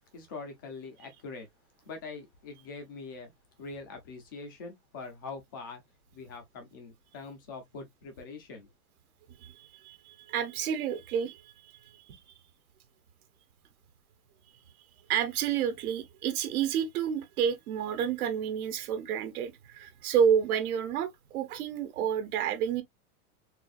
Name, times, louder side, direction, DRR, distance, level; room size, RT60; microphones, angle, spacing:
voice 1, 0.1-1.5 1.8-3.3 3.6-5.8 6.1-8.7, left 4 dB, 15° left, 0.3 m, -43 dB
voice 2, 9.4-11.7 12.1-12.2 15.1-22.8, right 8 dB, 70° right, 1.2 m, -30 dB
4.1 x 2.7 x 2.3 m
supercardioid pair, 160°, 45 cm